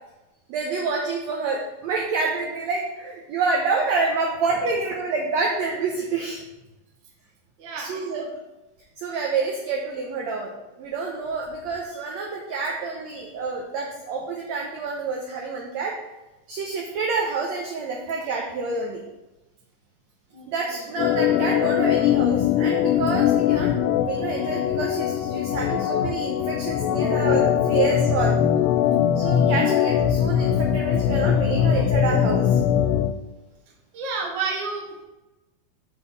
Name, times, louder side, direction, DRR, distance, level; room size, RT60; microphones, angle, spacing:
voice 1, 0.5-6.4 7.8-8.2 9.0-10.5 10.8-15.9 16.5-19.0 20.5-28.4 29.2-32.6, right 4 dB, 75° right, 0 dB, 1.6 m, -28 dB
voice 2, 7.6-8.2 20.3-20.8 33.9-35.0, right 4 dB, 50° right, 0 dB, 1.4 m, -31 dB
Organ, 21.0-33.1, left 10 dB, 80° left, 2.0 m, -21 dB
7.4 x 4.1 x 6.5 m, 1.1 s
omnidirectional pair, 4.1 m